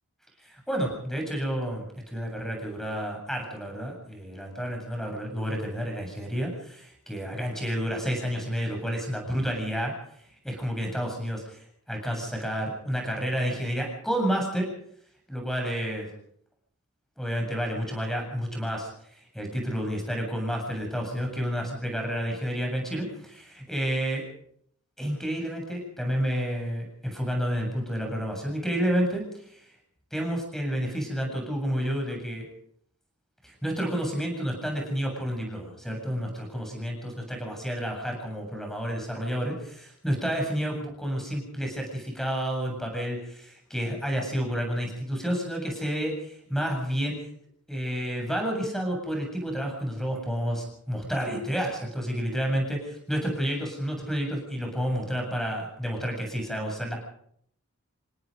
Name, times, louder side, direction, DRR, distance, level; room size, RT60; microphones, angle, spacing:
voice 1, 0.4-9.9 10.4-14.7 15.3-16.1 17.2-24.2 25.0-29.7 30.1-32.4 33.4-47.2 47.7-57.0, equal, ahead, 2 dB, 7.7 m, -30 dB
28.0 x 18.0 x 5.3 m, 0.68 s
head